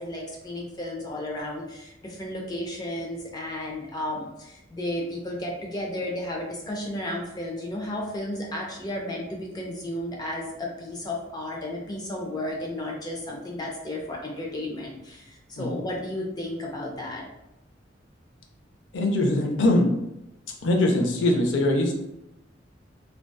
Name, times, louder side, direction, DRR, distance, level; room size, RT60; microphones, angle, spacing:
voice 1, 0.0-17.3, left 1 dB, 20° left, -1 dB, 0.4 m, -33 dB
voice 2, 18.9-19.9 20.6-21.9, left 1 dB, 90° left, 2 dB, 0.5 m, -22 dB
2.6 x 2.2 x 2.2 m, 0.88 s
head